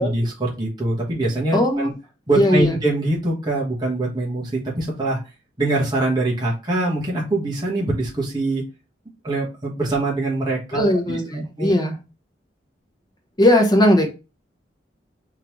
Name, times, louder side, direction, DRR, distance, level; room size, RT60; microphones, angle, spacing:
voice 1, 0.0-1.9 2.3-5.2 5.6-8.6 9.2-11.2 11.6-11.7, right 2 dB, 25° right, -4 dB, 1.3 m, -23 dB
voice 2, 1.5-1.9 2.4-2.8 10.7-12.0 13.4-14.1, left 1 dB, 25° left, 2 dB, 0.9 m, -18 dB
3.8 x 3.2 x 3.0 m, 0.29 s
head